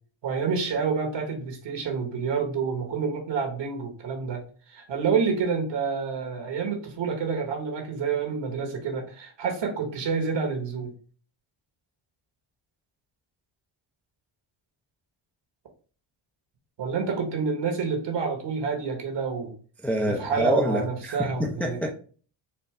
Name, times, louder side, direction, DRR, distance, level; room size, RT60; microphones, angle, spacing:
voice 1, 0.2-4.4 4.7-10.9 16.8-19.5 20.1-21.8, right 5 dB, 60° right, 1.4 m, -28 dB
voice 2, 19.8-21.9, equal, 5° left, 0.5 m, -26 dB
4.3 x 2.6 x 3.2 m
cardioid pair, 105°, 49 cm